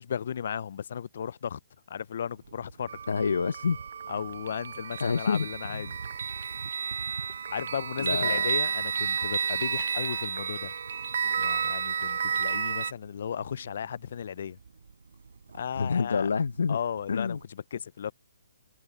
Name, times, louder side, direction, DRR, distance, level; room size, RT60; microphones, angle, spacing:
voice 1, 0.0-1.6 1.9-3.0 4.1-6.0 7.5-10.7 11.4-14.6 15.5-16.3 16.7-18.1, left 8 dB, 40° left, 0.3 m, -35 dB
sound 1, 2.3-17.5, right 5 dB, 80° right, 4.4 m, -50 dB
sound 2, 2.9-12.9, right 6 dB, 50° right, 0.5 m, -31 dB
voice 2, 3.1-3.8 5.0-5.5 5.7-5.8 8.0-8.6 15.8-16.8 17.1-17.4, left 5 dB, 85° left, 0.7 m, -27 dB
hypercardioid pair, 180°, 0 cm